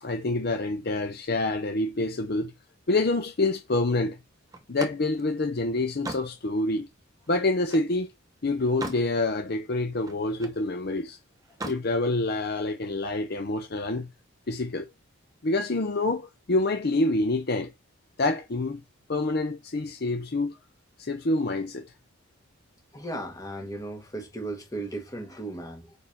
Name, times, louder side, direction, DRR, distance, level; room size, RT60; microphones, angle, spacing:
voice 1, 0.0-2.5 2.9-4.2 4.7-6.9 7.3-8.1 8.4-11.2 11.6-14.1 14.5-14.9 15.4-17.7 18.2-18.8 19.1-20.6 21.0-21.9, left 2 dB, 50° left, 0.7 m, -27 dB
Slam, 4.5-8.0 8.4-9.1 9.5-10.6 11.4-11.9, right 2 dB, 15° right, 0.9 m, -40 dB
voice 2, 22.9-25.9, right 2 dB, 15° left, 1.6 m, -36 dB
5.0 x 4.6 x 5.9 m
head